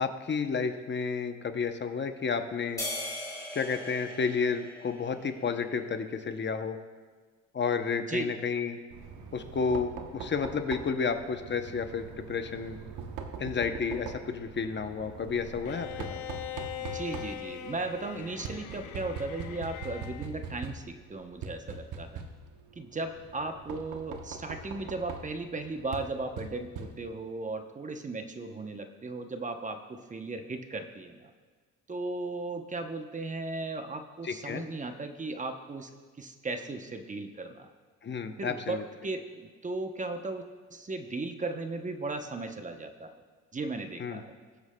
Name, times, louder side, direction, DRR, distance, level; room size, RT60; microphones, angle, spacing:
voice 1, 0.0-2.8 3.5-6.8 7.5-8.8 9.3-12.8 13.4-16.2 34.2-34.6 38.0-38.8 44.0-44.2, left 5 dB, 35° left, 8 dB, 0.7 m, -31 dB
sound 1, 2.8-5.4, left 1 dB, 10° left, 2.5 m, -39 dB
voice 2, 8.0-8.3 16.7-22.3 22.8-31.3 31.9-35.9 36.2-37.7 38.4-40.4 40.7-43.2 43.5-44.4, right 3 dB, 25° right, 6 dB, 0.7 m, -36 dB
Knock, 8.9-27.3, right 5 dB, 80° right, 1.0 m, -43 dB
Bowed string instrument, 15.7-20.3, left 12 dB, 75° left, 0.7 m, -41 dB
21.0 x 7.9 x 2.2 m, 1.5 s
cardioid pair, 90°, 30 cm